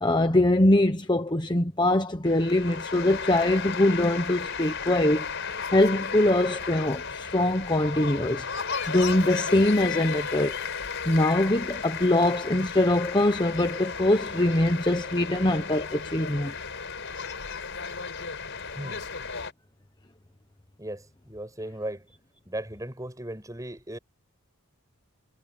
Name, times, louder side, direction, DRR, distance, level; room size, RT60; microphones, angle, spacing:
voice 1, 0.0-5.3 5.7-8.5 8.9-10.6 11.0-16.5, left 1 dB, 20° left, 1.0 m, -23 dB
sound 1, 2.2-19.5, left 5 dB, 55° left, 5.4 m, -34 dB
voice 2, 18.8-19.1 20.8-22.1 22.5-24.0, right 1 dB, 15° right, 7.4 m, -37 dB
head